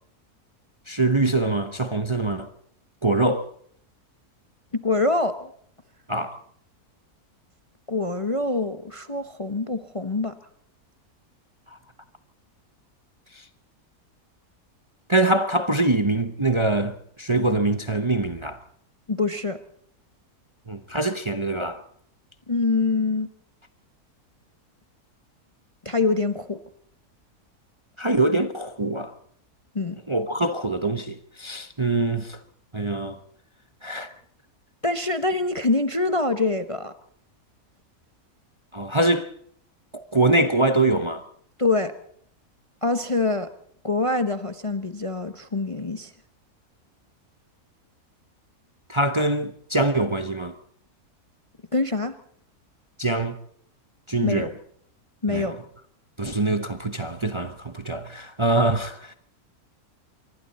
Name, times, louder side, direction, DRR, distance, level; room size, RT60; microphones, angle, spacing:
voice 1, 0.9-2.5 3.0-3.5 6.1-6.4 15.1-18.6 20.7-21.8 28.0-29.1 30.1-32.4 32.7-33.2 33.8-34.1 38.7-39.3 39.9-41.2 48.9-50.5 53.0-53.4 54.1-54.5 55.3-55.5 56.2-59.1, right 2 dB, 20° right, 0.9 m, -24 dB
voice 2, 4.7-5.5 7.9-10.3 19.1-19.6 22.5-23.3 25.8-26.6 29.7-30.0 34.8-36.9 41.6-41.9 42.8-43.5 43.8-46.1 51.7-52.1 54.2-54.5 55.2-55.6, left 3 dB, 25° left, 0.9 m, -25 dB
26.0 x 24.0 x 4.2 m
omnidirectional pair, 1.6 m